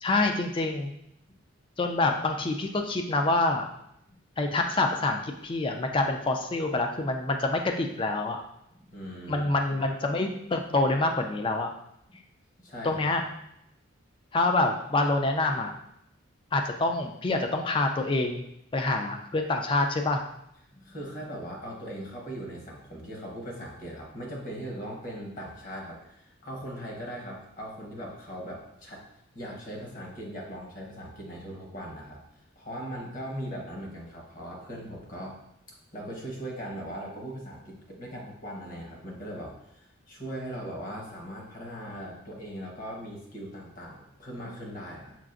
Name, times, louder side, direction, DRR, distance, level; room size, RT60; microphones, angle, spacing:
voice 1, 0.0-0.9 1.8-3.7 4.4-8.4 9.3-11.7 12.8-13.2 14.3-15.7 16.5-18.4 18.7-20.2, left 2 dB, 25° left, 4 dB, 0.3 m, -26 dB
voice 2, 8.7-9.8 12.6-13.0 20.7-29.0 29.3-32.2 32.6-35.4 35.9-45.2, equal, 40° left, -2 dB, 1.0 m, -39 dB
5.7 x 2.4 x 2.5 m, 0.78 s
head